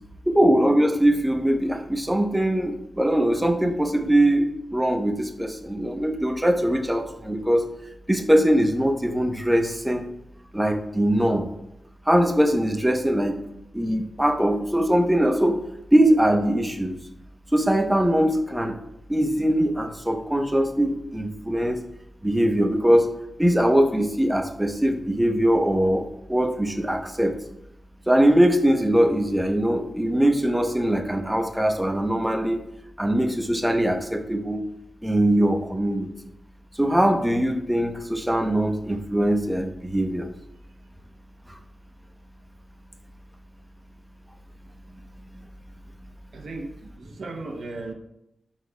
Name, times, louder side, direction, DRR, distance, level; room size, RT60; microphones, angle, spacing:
voice 1, 0.3-7.7 8.1-10.1 10.5-11.4 12.1-13.4 13.7-15.6 15.9-17.0 17.5-18.8 19.1-21.8 22.2-23.1 23.4-27.3 28.1-32.6 33.0-34.6 35.0-36.1 36.8-40.3, right 1 dB, 10° right, 3 dB, 0.9 m, -21 dB
voice 2, 46.3-46.7 47.0-47.9, right 2 dB, 85° right, 3 dB, 0.8 m, -35 dB
11.5 x 4.1 x 2.3 m, 0.80 s
cardioid pair, 65°, 0 cm